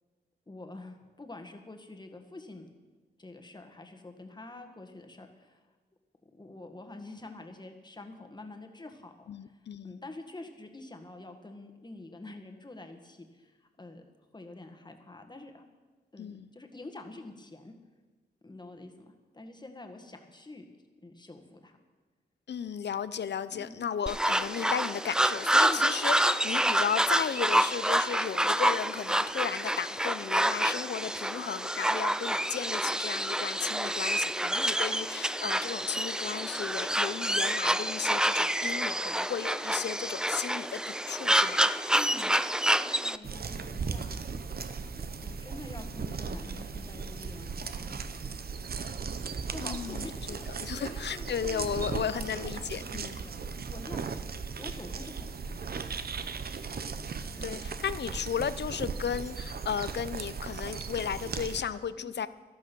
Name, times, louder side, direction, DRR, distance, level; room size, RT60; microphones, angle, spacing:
voice 1, 0.5-2.7 3.2-5.6 6.4-14.0 14.3-15.6 16.1-17.7 18.4-20.6 21.0-21.8 23.5-23.9 25.7-25.8 41.9-42.3 42.7-44.2 44.9-48.0 49.5-50.5 50.7-53.3 53.7-54.0 54.6-55.6 57.3-57.6 62.0-62.1, left 2 dB, 25° left, 5 dB, 1.6 m, -47 dB
voice 2, 9.3-10.0 16.2-16.5 22.5-41.7 49.6-53.2 57.4-62.3, left 8 dB, 70° left, 15 dB, 0.6 m, -35 dB
sound 1, 24.1-43.2, right 1 dB, 5° right, 0.4 m, -28 dB
sound 2, 43.2-61.6, right 5 dB, 60° right, 0.8 m, -37 dB
13.5 x 12.0 x 6.2 m, 1.3 s
wide cardioid pair, 120°, 18 cm